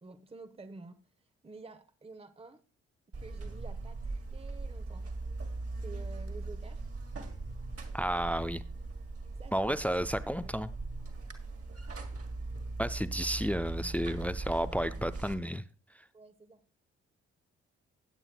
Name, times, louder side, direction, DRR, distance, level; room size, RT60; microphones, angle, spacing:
voice 1, 0.0-1.0 1.4-2.6 3.1-5.1 5.8-6.8 9.4-9.9 16.1-16.6, right 3 dB, 15° right, 1.0 m, -50 dB
Buzz, 3.1-15.3, right 3 dB, 40° right, 1.9 m, -39 dB
voice 2, 7.9-8.6 9.5-10.7 12.8-15.6, equal, 5° left, 0.5 m, -32 dB
17.0 x 8.8 x 2.2 m
figure-of-eight pair, 40°, 36 cm